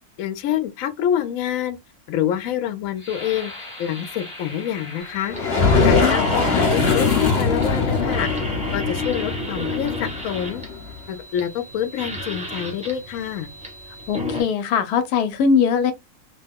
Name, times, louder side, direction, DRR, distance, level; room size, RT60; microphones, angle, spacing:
voice 1, 0.2-1.8 2.1-3.5 3.8-5.3 5.8-8.3 8.7-10.6 11.1-13.5, left 10 dB, 70° left, 0.9 m, -26 dB
sound 1, 2.9-8.6 9.3-9.4 9.9-10.3, left 2 dB, 20° left, 1.1 m, -42 dB
sound 2, 5.0-14.4, left 2 dB, 10° right, 0.3 m, -31 dB
sound 3, 5.3-10.9, left 4 dB, 50° left, 1.0 m, -22 dB
voice 2, 5.8-6.2 14.1-15.9, left 6 dB, 90° left, 1.1 m, -21 dB
2.8 x 2.2 x 3.4 m
omnidirectional pair, 1.6 m